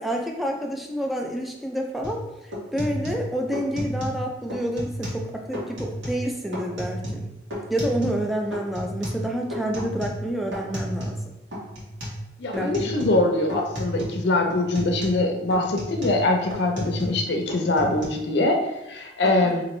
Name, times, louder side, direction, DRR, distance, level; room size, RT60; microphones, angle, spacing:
voice 1, 0.0-2.2 2.7-7.3 7.7-11.2 12.5-12.9 19.2-19.5, equal, ahead, 1 dB, 0.3 m, -28 dB
sound 1, 2.0-2.2 2.5-4.2 4.5-5.3 5.5-6.2 6.5-8.3 8.5-11.2 11.5-12.2 12.5-13.2 13.5-14.2 14.5-17.2 17.5-18.0, equal, 80° right, 1.2 m, -32 dB
voice 2, 12.4-19.6, left 2 dB, 65° left, 2 dB, 0.5 m, -23 dB
4.1 x 2.6 x 3.0 m, 0.94 s
head